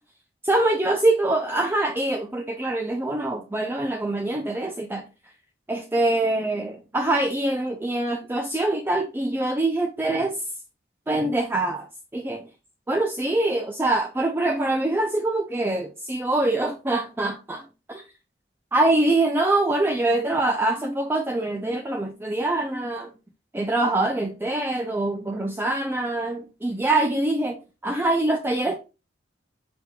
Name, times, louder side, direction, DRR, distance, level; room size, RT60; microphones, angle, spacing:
voice 1, 0.4-5.0 5.7-10.4 11.1-11.9 12.1-12.5 12.9-18.0 18.7-23.1 23.5-28.8, right 2 dB, 10° right, 0.4 m, -24 dB
5.1 x 4.5 x 2.2 m
head